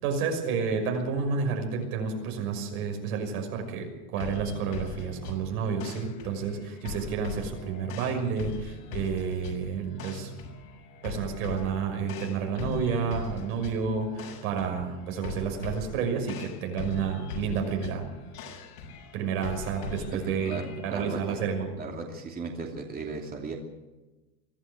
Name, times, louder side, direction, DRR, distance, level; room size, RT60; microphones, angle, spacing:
voice 1, 0.0-10.3 11.0-18.0 19.1-21.8, right 6 dB, 65° right, 4 dB, 6.2 m, -30 dB
sound 1, 4.2-20.9, left 3 dB, 80° left, 6.8 m, -40 dB
voice 2, 20.1-21.4 21.8-23.6, right 3 dB, 20° right, 1 dB, 2.8 m, -37 dB
24.0 x 13.5 x 8.1 m, 1.1 s
supercardioid pair, 125°, 45 cm